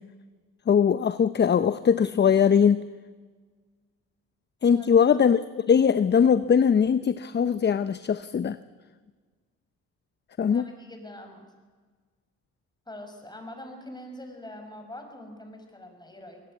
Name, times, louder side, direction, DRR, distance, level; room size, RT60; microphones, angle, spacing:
voice 1, 0.7-2.8 4.6-8.6 10.4-10.6, left 7 dB, 35° left, 14 dB, 0.7 m, -21 dB
voice 2, 10.5-11.4 12.9-16.4, left 1 dB, 15° left, 5 dB, 5.8 m, -43 dB
23.5 x 19.0 x 8.5 m, 1.5 s
cardioid pair, 90°, 30 cm